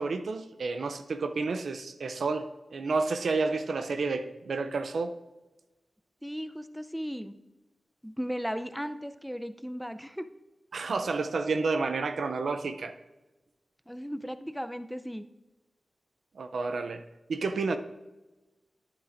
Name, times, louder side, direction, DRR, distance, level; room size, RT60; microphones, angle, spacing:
voice 1, 0.0-5.2 10.7-12.9 16.4-17.8, right 4 dB, 80° right, 0.5 m, -30 dB
voice 2, 6.2-7.4 8.0-10.3 13.9-15.3, equal, ahead, 0.6 m, -36 dB
10.0 x 9.2 x 2.6 m
cardioid pair, 45°, 0 cm